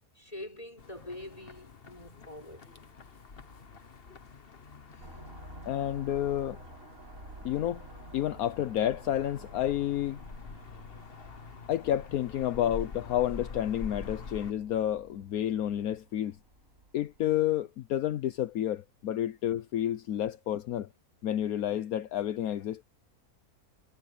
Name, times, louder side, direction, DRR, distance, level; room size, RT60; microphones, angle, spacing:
voice 1, 0.2-2.7 4.9-5.1, left 1 dB, 25° left, 5.3 m, -45 dB
sound 1, 0.8-14.5, left 4 dB, 40° left, 1.4 m, -46 dB
sound 2, 5.0-17.4, right 1 dB, 60° right, 7.9 m, -51 dB
voice 2, 5.7-6.6 7.4-7.9 8.1-10.2 11.7-16.4 16.9-20.9 21.2-22.8, left 11 dB, 75° left, 1.2 m, -30 dB
omnidirectional pair, 1.6 m